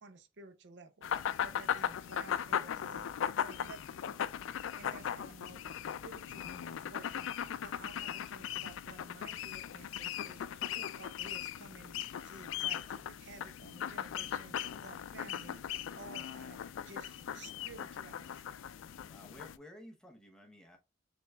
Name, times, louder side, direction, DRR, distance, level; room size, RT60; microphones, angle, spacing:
voice 1, 0.0-3.1 3.4-4.3 4.8-18.5, right 3 dB, 60° right, 0.5 m, -54 dB
sound 1, 1.0-19.6, left 9 dB, 80° left, 0.3 m, -38 dB
voice 2, 19.1-20.8, left 1 dB, 5° left, 0.7 m, -54 dB
5.9 x 3.4 x 2.2 m
head